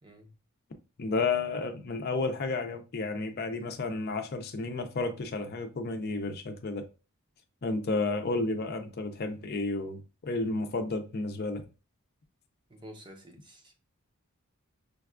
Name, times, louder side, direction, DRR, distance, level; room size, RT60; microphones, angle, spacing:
voice 1, 0.0-0.3 12.7-13.8, equal, 20° right, 0.6 m, -50 dB
voice 2, 1.0-6.8 7.6-11.6, left 3 dB, 45° left, 0.5 m, -32 dB
5.1 x 2.3 x 2.3 m
head